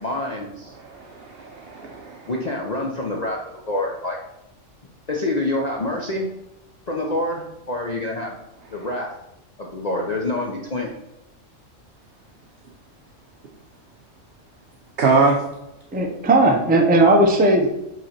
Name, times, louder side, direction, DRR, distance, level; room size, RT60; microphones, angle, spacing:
voice 1, 0.0-0.7 2.3-4.2 5.1-6.3 6.9-8.4 8.7-9.1 9.6-11.0, left 2 dB, 40° left, 0.6 m, -26 dB
voice 2, 0.7-2.3 8.7-8.9 15.0-15.4, right 4 dB, 55° right, 0.9 m, -22 dB
voice 3, 15.9-17.7, right 2 dB, 10° right, 0.5 m, -16 dB
8.0 x 3.2 x 4.3 m
omnidirectional pair, 1.4 m